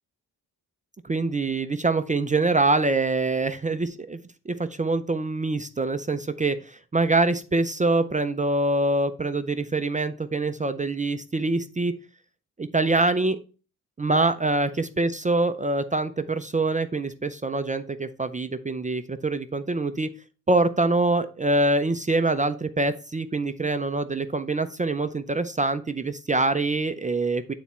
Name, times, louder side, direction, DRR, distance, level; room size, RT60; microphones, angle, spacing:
voice 1, 1.0-4.2 4.5-11.9 12.6-13.4 14.0-20.1 20.5-27.5, right 2 dB, 20° right, 9 dB, 0.4 m, -25 dB
9.3 x 4.1 x 4.3 m, 0.35 s
wide cardioid pair, 160°, 37 cm